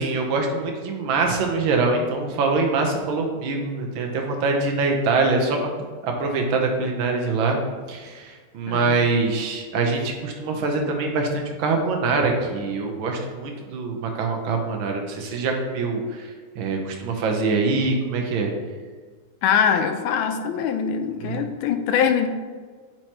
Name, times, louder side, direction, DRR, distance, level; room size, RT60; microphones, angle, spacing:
voice 1, 0.0-5.7 6.0-7.6 7.9-18.5 21.2-21.4, right 3 dB, 70° right, 2 dB, 1.6 m, -24 dB
voice 2, 8.7-9.0 19.4-22.3, left 8 dB, 75° left, 7 dB, 1.4 m, -23 dB
8.8 x 4.6 x 3.0 m, 1.5 s
omnidirectional pair, 2.4 m